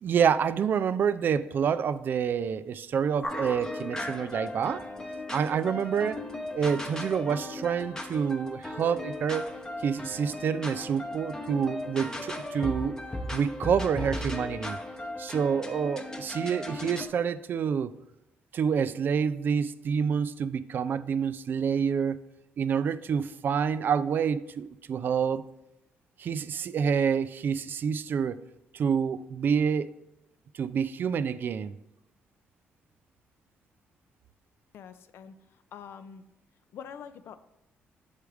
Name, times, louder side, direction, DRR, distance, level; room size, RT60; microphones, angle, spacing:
voice 1, 0.0-4.9 5.3-6.2 6.5-9.5 9.8-13.0 13.3-14.8 15.2-17.9 18.5-22.2 22.6-25.4 26.2-28.4 28.7-29.9 30.5-31.8, right 7 dB, 55° right, 13 dB, 0.3 m, -28 dB
sound 1, 3.2-17.1, left 1 dB, 15° left, 0.7 m, -37 dB
voice 2, 34.7-36.2 36.7-37.4, left 7 dB, 70° left, 11 dB, 0.5 m, -45 dB
7.3 x 3.4 x 4.7 m, 0.90 s
cardioid pair, 95°, 4 cm